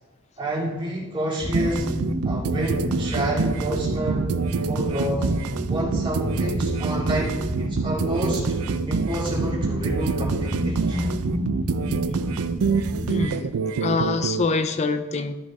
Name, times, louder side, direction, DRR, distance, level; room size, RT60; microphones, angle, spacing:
voice 1, 0.4-1.9 2.2-4.3 4.6-5.3 5.7-8.4 8.9-11.1, right 1 dB, 20° right, -6 dB, 2.3 m, -29 dB
sound 1, 1.4-13.3, equal, 50° right, 2.3 m, -29 dB
sound 2, 1.5-14.4, right 5 dB, 85° right, 0.4 m, -27 dB
voice 2, 13.1-15.4, left 4 dB, 30° left, 10 dB, 0.4 m, -25 dB
13.0 x 6.2 x 3.5 m, 1.2 s
head